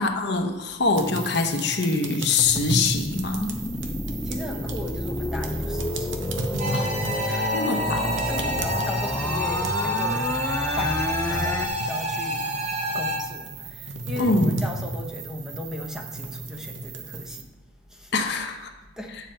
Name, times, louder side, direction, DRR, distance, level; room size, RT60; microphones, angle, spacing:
voice 1, 0.0-3.6 6.7-6.9 7.5-8.2 14.2-14.6 18.1-18.7, left 3 dB, 55° left, 5 dB, 0.9 m, -24 dB
sound 1, 0.9-17.4, right 2 dB, 65° right, 0.9 m, -34 dB
sound 2, 2.4-11.7, left 1 dB, 15° left, 0.4 m, -30 dB
voice 2, 4.1-6.3 7.2-7.7 8.2-10.4 10.8-12.5 12.9-17.6 17.9-18.1 18.9-19.2, equal, 5° right, 2 dB, 0.8 m, -37 dB
sound 3, 6.6-13.2, equal, 35° right, 1.0 m, -28 dB
8.9 x 7.1 x 4.4 m, 1.1 s
head